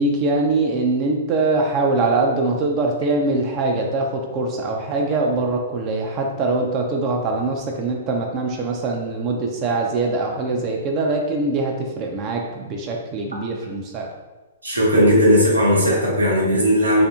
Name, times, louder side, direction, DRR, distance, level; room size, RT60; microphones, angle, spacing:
voice 1, 0.0-14.1, right 3 dB, 30° right, 1 dB, 0.3 m, -22 dB
voice 2, 14.6-17.0, equal, 80° right, -4 dB, 0.8 m, -17 dB
2.7 x 2.6 x 2.2 m, 1.1 s
figure-of-eight pair, 110°, 0 cm